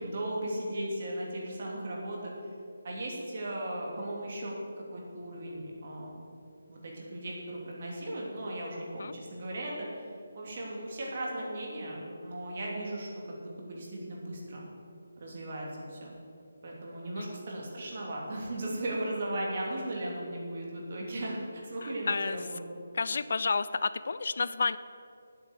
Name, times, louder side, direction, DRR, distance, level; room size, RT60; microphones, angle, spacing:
voice 1, 0.0-2.3 2.8-6.2 6.7-10.1 10.3-14.7 15.2-16.1 16.6-22.6, right 1 dB, 40° right, -2 dB, 2.7 m, -37 dB
voice 2, 21.8-22.4 22.9-24.8, left 4 dB, 50° left, 15 dB, 0.3 m, -30 dB
9.3 x 8.1 x 8.0 m, 2.6 s
hypercardioid pair, 175°, 0 cm